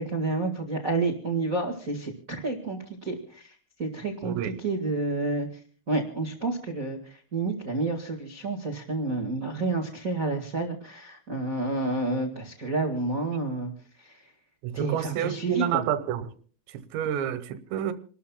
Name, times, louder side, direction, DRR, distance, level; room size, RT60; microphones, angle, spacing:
voice 1, 0.0-5.5 5.9-13.7 14.0-14.2 14.7-15.8, right 3 dB, 60° right, 0.8 m, -30 dB
voice 2, 4.2-4.6 14.6-16.3 16.7-17.9, right 10 dB, 80° right, 3.3 m, -29 dB
29.0 x 13.0 x 2.3 m
omnidirectional pair, 5.2 m